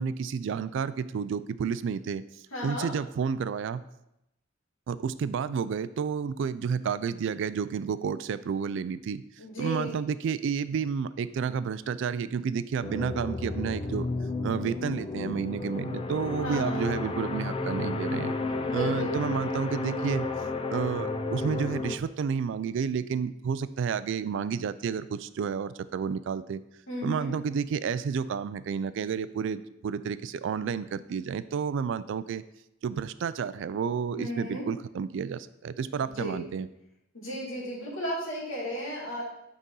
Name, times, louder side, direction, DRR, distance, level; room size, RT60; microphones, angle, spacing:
voice 1, 0.0-2.2 2.6-3.8 4.9-9.2 9.6-14.1 14.4-18.4 18.7-20.3 20.7-26.6 27.0-32.4 32.8-36.7, right 6 dB, 65° right, 15 dB, 0.3 m, -31 dB
voice 2, 2.5-2.9 9.4-10.0 16.4-16.8 18.7-19.4 26.9-27.3 34.2-34.7 36.0-36.4 37.1-39.2, equal, 85° left, -4 dB, 2.3 m, -34 dB
sound 1, 12.8-22.0, left 3 dB, 25° left, 0.4 m, -32 dB
8.2 x 4.0 x 3.8 m, 0.85 s
head